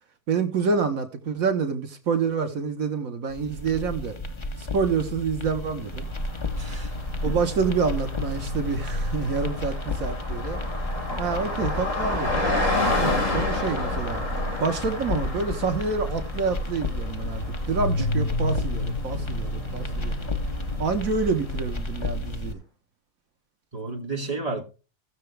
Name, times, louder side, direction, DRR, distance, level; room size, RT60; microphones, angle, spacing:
voice 1, 0.3-4.1 4.6-6.1 7.2-10.6 11.2-12.4 13.0-14.2 14.6-20.2 20.8-22.6, right 5 dB, 80° right, 1.7 m, -27 dB
sound 1, 3.3-22.5, left 2 dB, 25° left, 0.8 m, -32 dB
Car passing by, 6.0-22.1, left 2 dB, 65° left, 5.0 m, -31 dB
voice 2, 6.6-6.9 7.2-7.4 18.0-18.3 19.9-20.1 23.7-24.6, right 3 dB, 25° right, 2.4 m, -32 dB
17.5 x 6.9 x 3.3 m
omnidirectional pair, 1.4 m